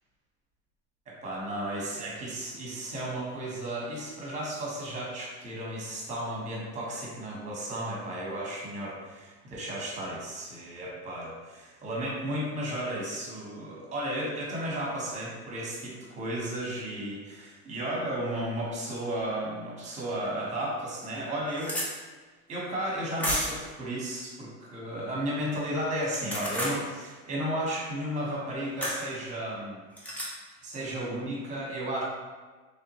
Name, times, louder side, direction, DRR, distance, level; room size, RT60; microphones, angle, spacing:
voice 1, 1.1-21.8 22.5-29.8 30.6-32.0, right 1 dB, 20° right, -4 dB, 1.1 m, -34 dB
sound 1, 20.2-20.3 20.9-21.0 21.1-21.9 23.2-23.7 26.0-26.8 28.8-29.0 30.0-30.3, equal, 5° left, 0.4 m, -31 dB
3.6 x 3.3 x 3.0 m, 1.4 s
cardioid pair, 155°, 34 cm